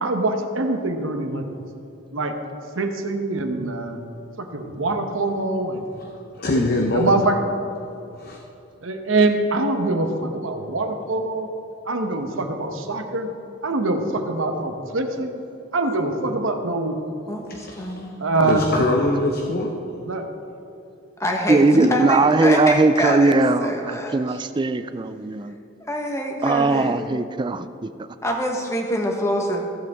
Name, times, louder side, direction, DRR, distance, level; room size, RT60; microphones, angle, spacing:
voice 1, 0.0-1.4 2.1-2.4 2.8-4.0 4.5-5.9 6.5-6.6 6.9-7.4 8.8-11.5 11.9-13.3 13.6-15.4 15.7-16.9 18.2-18.6 20.0-20.2 21.7-21.9, right 2 dB, 70° right, 6 dB, 1.0 m, -24 dB
voice 2, 6.4-7.1 8.2-8.4 17.5-18.1 18.5-19.7, left 2 dB, 45° left, 1 dB, 0.7 m, -23 dB
voice 3, 17.3-18.2 21.2-21.6 21.9-24.4 25.8-27.1 28.2-29.6, equal, 15° left, 1 dB, 1.1 m, -25 dB
voice 4, 18.4-18.9 21.5-25.6 26.4-27.9, right 2 dB, 20° right, 11 dB, 0.3 m, -20 dB
15.5 x 7.9 x 3.5 m, 2.7 s
head